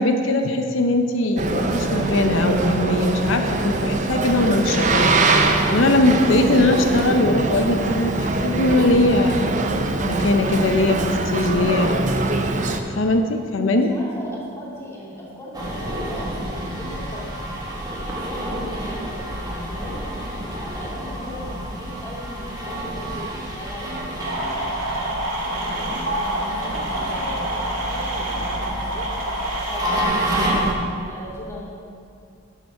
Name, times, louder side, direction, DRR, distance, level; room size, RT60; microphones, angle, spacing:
voice 1, 0.0-5.1 5.7-9.5 10.0-12.0 12.9-13.9, left 2 dB, 70° left, 5 dB, 0.7 m, -20 dB
Boat Water vehicle, 1.4-12.8, right 2 dB, 40° right, 0.7 m, -22 dB
voice 2, 13.6-17.3 18.0-20.0 20.6-25.2 25.7-30.6 31.1-31.7, equal, 15° left, -7 dB, 2.5 m, -38 dB
sound 1, 15.5-30.7, right 1 dB, 20° right, 1.5 m, -29 dB
sound 2, 24.2-30.0, right 1 dB, 75° right, 1.9 m, -27 dB
11.5 x 6.8 x 4.7 m, 2.4 s
head